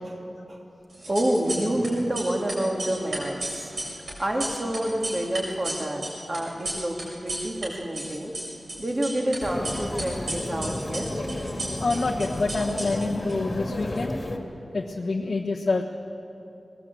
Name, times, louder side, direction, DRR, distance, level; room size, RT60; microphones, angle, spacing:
sound 1, 0.9-7.7 7.9-9.4 9.6-13.3, right 1 dB, 65° right, 7.0 m, -34 dB
voice 1, 1.1-3.4 4.2-7.0 7.2-8.3 8.8-11.1, right 1 dB, 30° right, 0 dB, 2.6 m, -28 dB
sound 2, 9.4-14.4, left 1 dB, 30° left, 2.1 m, -32 dB
voice 2, 11.8-14.1 14.7-15.8, left 3 dB, 55° left, -2 dB, 1.3 m, -26 dB
21.5 x 18.5 x 8.5 m, 2.9 s
wide cardioid pair, 120°, 0 cm